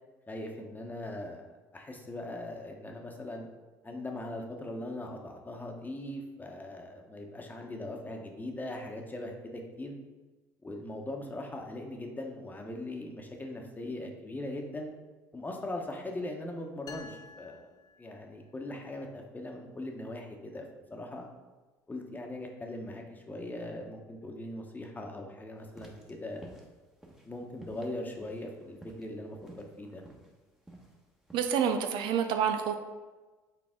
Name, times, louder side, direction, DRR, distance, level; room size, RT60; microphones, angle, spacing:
voice 1, 0.3-1.4 1.7-3.5 3.8-10.0 10.6-14.9 15.3-17.6 18.0-20.6 20.9-21.3 21.9-26.5 27.2-30.0, left 1 dB, 20° left, 2 dB, 1.1 m, -40 dB
sound 1, 16.9-18.6, left 5 dB, 40° left, 0.7 m, -50 dB
sound 2, 25.7-31.5, right 1 dB, 5° right, 1.2 m, -53 dB
voice 2, 31.3-32.7, right 7 dB, 60° right, 6 dB, 0.5 m, -28 dB
6.3 x 4.0 x 3.7 m, 1.2 s
hypercardioid pair, 65°, 9 cm